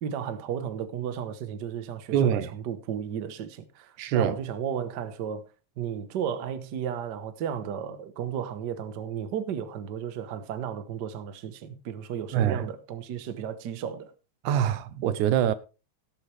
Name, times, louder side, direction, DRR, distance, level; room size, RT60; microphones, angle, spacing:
voice 1, 0.0-5.5 5.8-14.1, right 8 dB, 60° right, 1.1 m, -34 dB
voice 2, 2.1-2.5 4.0-4.4 12.3-12.7 14.4-15.5, right 10 dB, 90° right, 2.3 m, -24 dB
17.5 x 7.6 x 3.4 m
omnidirectional pair, 3.4 m